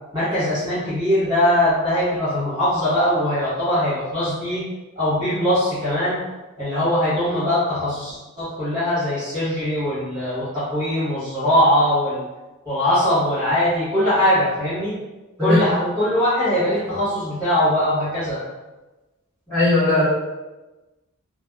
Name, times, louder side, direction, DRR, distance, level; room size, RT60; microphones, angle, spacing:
voice 1, 0.1-4.6 5.0-6.2 6.6-12.2 12.6-14.9 15.4-18.4, left 1 dB, 20° right, -14 dB, 1.2 m, -21 dB
voice 2, 19.5-20.1, left 2 dB, 5° left, -15 dB, 1.3 m, -17 dB
2.6 x 2.2 x 2.3 m, 1.1 s
head